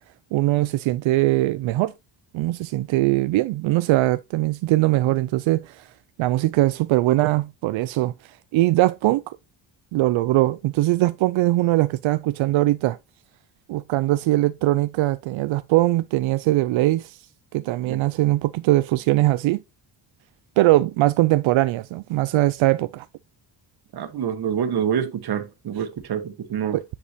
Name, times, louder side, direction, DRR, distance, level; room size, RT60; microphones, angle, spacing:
voice 1, 0.3-1.9 2.3-5.9 6.2-9.4 9.9-13.0 13.7-17.2 17.5-19.6 20.6-23.1 26.7-26.8, right 17 dB, 85° right, 0.5 m, -21 dB
voice 2, 23.9-26.8, right 8 dB, 55° right, 1.5 m, -26 dB
9.8 x 5.3 x 2.8 m
cardioid pair, 150°, 46 cm